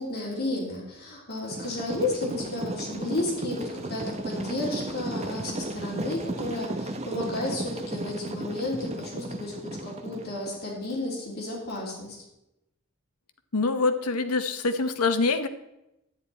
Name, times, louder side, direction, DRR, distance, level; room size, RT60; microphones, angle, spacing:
voice 1, 0.0-12.2, left 2 dB, 45° left, -4 dB, 3.3 m, -32 dB
sound 1, 1.5-10.6, right 1 dB, 30° right, 0.7 m, -35 dB
voice 2, 13.5-15.5, left 3 dB, 90° left, 9 dB, 0.9 m, -25 dB
11.0 x 9.3 x 4.2 m, 0.88 s
head